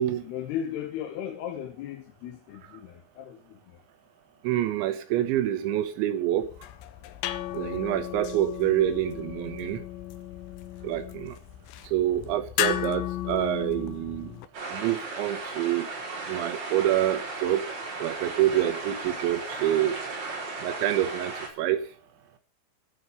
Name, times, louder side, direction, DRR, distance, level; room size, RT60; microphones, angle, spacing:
voice 1, 0.2-3.4, left 10 dB, 70° left, 2.9 m, -36 dB
voice 2, 4.4-6.5 7.5-9.8 10.8-11.4 11.8-14.4 14.7-15.9 16.3-17.6 18.0-20.0 20.6-21.8, right 12 dB, 85° right, 3.4 m, -27 dB
sound 1, 6.4-14.5, left 13 dB, 90° left, 3.3 m, -34 dB
sound 2, 14.5-21.5, right 3 dB, 50° right, 6.3 m, -36 dB
15.5 x 5.4 x 8.1 m
omnidirectional pair, 5.3 m